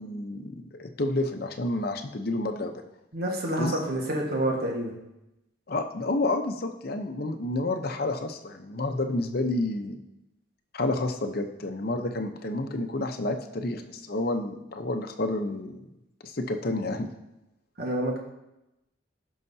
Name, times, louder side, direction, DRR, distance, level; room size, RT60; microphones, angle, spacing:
voice 1, 0.0-2.7 3.6-3.8 5.7-10.0 10.7-15.9 16.2-17.1, left 2 dB, 55° left, 5 dB, 0.7 m, -30 dB
voice 2, 3.1-4.9 17.8-18.2, right 1 dB, 55° right, 0 dB, 1.5 m, -28 dB
16.5 x 5.6 x 2.7 m, 0.91 s
head